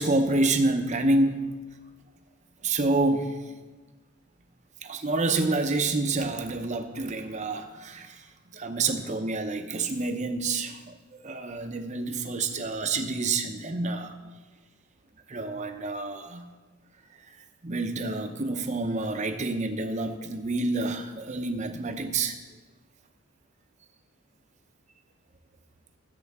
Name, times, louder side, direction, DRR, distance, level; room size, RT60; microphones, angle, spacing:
voice 1, 0.0-1.6 2.6-3.4 4.8-8.2 8.5-14.1 15.3-16.5 17.6-22.4, right 2 dB, 30° right, 7 dB, 0.6 m, -28 dB
15.0 x 7.5 x 3.5 m, 1.3 s
head